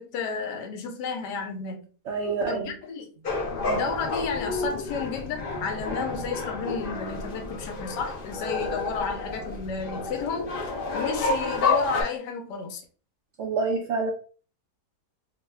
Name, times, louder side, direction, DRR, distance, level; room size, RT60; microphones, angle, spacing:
voice 1, 0.0-1.8 2.5-3.1 3.6-10.5 10.9-12.8, left 5 dB, 85° left, 1.2 m, -32 dB
voice 2, 2.1-2.7 13.4-14.1, right 4 dB, 75° right, 0.6 m, -27 dB
sound 1, 3.2-12.0, left 3 dB, 70° left, 0.5 m, -30 dB
3.0 x 2.1 x 3.3 m
omnidirectional pair, 1.8 m